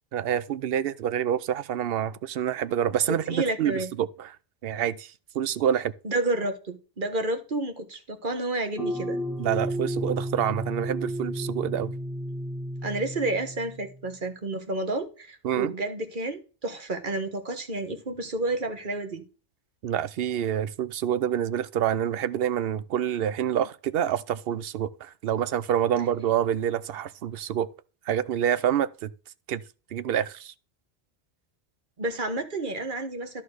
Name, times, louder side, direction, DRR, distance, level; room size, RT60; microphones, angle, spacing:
voice 1, 0.1-4.4 4.6-5.9 9.4-11.9 15.4-15.7 19.8-27.7 28.1-29.1 29.5-29.6 29.9-30.5, right 10 dB, 65° right, 0.8 m, -27 dB
voice 2, 3.1-3.9 6.0-9.2 12.8-19.2 32.0-33.4, right 2 dB, 45° right, 1.5 m, -30 dB
sound 1, 8.8-14.0, right 1 dB, ahead, 1.9 m, -32 dB
11.5 x 3.9 x 6.4 m
omnidirectional pair, 1.1 m